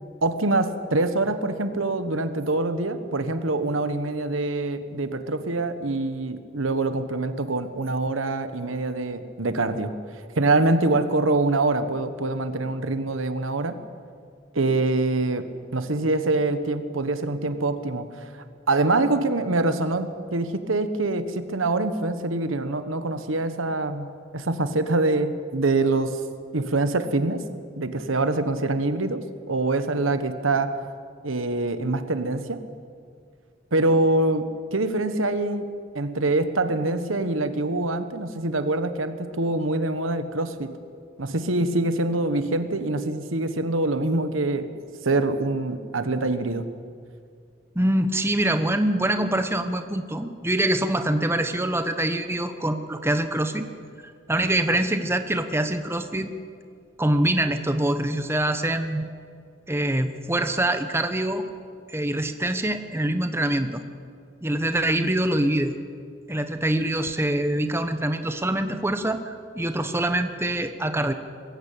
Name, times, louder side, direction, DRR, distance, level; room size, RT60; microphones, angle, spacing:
voice 1, 0.2-9.9 10.3-13.8 14.5-18.1 18.3-26.2 26.5-27.4 27.8-30.8 31.2-32.6 33.7-35.7 35.9-40.7 41.2-44.7 45.0-46.7, right 2 dB, 90° right, 10 dB, 1.3 m, -25 dB
voice 2, 47.7-53.7 54.3-56.3 57.0-59.1 59.7-61.4 61.9-63.8 64.4-65.7 66.3-71.1, right 1 dB, 10° right, 8 dB, 0.9 m, -24 dB
21.0 x 16.0 x 8.5 m, 2.2 s
head